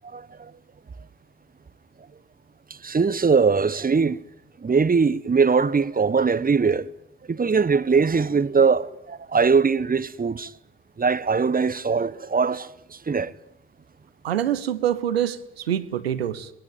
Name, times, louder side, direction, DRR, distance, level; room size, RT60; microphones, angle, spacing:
voice 1, 0.1-0.5 2.8-4.2 4.6-6.9 7.3-10.5 11.0-13.3, right 5 dB, 30° right, 1.4 m, -21 dB
voice 2, 14.2-16.5, right 10 dB, 85° right, 1.3 m, -25 dB
27.5 x 20.0 x 9.3 m
figure-of-eight pair, 40°, 30 cm